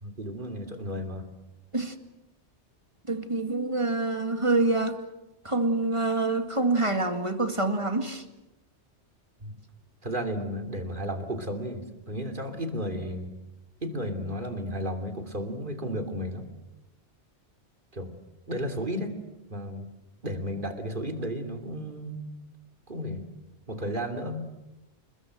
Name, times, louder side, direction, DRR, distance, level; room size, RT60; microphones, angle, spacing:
voice 1, 0.0-1.3 9.4-9.6 10.0-13.3 13.8-16.5 17.9-18.2 18.5-19.2 19.5-19.9 20.2-22.2 22.9-23.3 23.7-24.4, equal, 45° right, 5 dB, 3.1 m, -33 dB
voice 2, 3.1-5.0 5.4-8.2, right 2 dB, 25° right, 8 dB, 2.1 m, -26 dB
29.5 x 21.0 x 7.8 m, 0.97 s
omnidirectional pair, 1.2 m